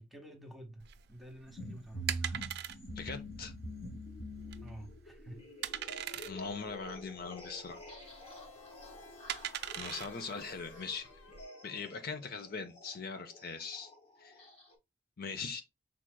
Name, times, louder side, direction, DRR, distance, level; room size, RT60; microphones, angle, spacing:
voice 1, 0.0-2.4 4.6-5.5, right 1 dB, ahead, 1.0 m, -50 dB
sound 1, 0.8-11.4, right 11 dB, 55° right, 0.4 m, -42 dB
sound 2, 1.5-14.7, equal, 30° left, 1.3 m, -47 dB
voice 2, 3.0-3.5 6.3-7.8 9.8-11.1 11.6-13.9 14.2-14.4 15.2-15.6, left 5 dB, 50° left, 0.6 m, -41 dB
sound 3, 8.0-12.4, left 4 dB, 75° left, 0.9 m, -58 dB
6.0 x 3.7 x 2.2 m
head